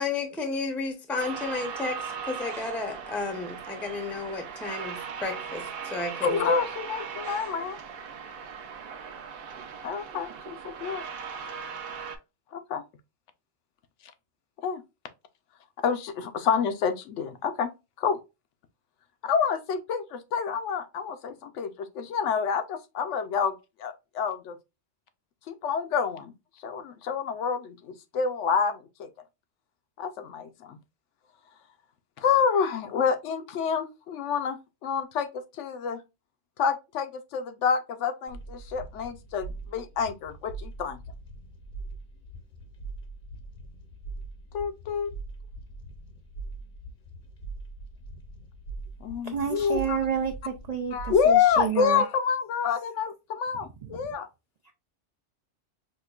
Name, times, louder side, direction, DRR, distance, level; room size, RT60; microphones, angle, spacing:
voice 1, 0.0-6.5, left 3 dB, ahead, 0.5 m, -32 dB
sound 1, 1.2-12.2, right 6 dB, 60° right, 0.7 m, -38 dB
voice 2, 6.2-7.8 9.8-11.0 12.5-12.8 14.6-14.8 15.8-17.7 18.0-18.2 19.2-24.6 25.5-26.3 26.6-29.1 30.0-30.8 32.2-34.6 34.8-36.0 36.6-41.0 44.5-45.1 49.0-50.0 50.9-54.3, left 6 dB, 80° left, 0.9 m, -28 dB
sound 2, 38.3-51.8, right 3 dB, 50° left, 0.7 m, -42 dB
voice 3, 49.2-52.0 53.8-53.9 54.6-54.7, right 8 dB, 75° right, 0.3 m, -30 dB
5.0 x 2.2 x 2.3 m
omnidirectional pair, 1.2 m